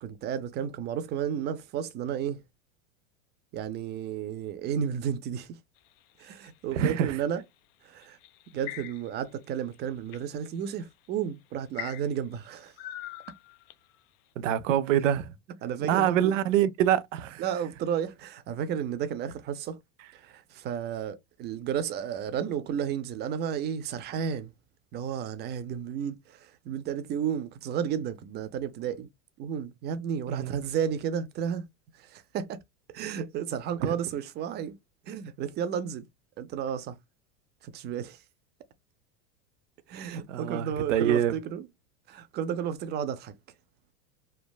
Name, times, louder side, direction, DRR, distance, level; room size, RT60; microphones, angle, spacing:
voice 1, 0.0-2.4 3.5-5.6 6.2-7.4 7.8-8.2 8.5-12.7 15.6-16.3 17.4-19.8 20.1-24.5 24.9-29.1 29.4-31.7 31.9-32.6 32.9-34.8 35.0-36.1 36.4-37.0 37.6-38.2 39.9-41.7 42.1-43.4, right 8 dB, 30° right, 0.4 m, -32 dB
sound 1, 5.8-7.0 8.0-9.3 9.7-10.2 10.9-11.1 11.7-13.9, left 14 dB, 55° left, 0.4 m, -42 dB
voice 2, 6.7-7.2 14.4-15.3 15.9-17.4 30.3-30.6 33.8-33.9 40.3-41.4, right 10 dB, 90° right, 0.5 m, -25 dB
3.3 x 2.0 x 2.2 m
supercardioid pair, 115°, 37 cm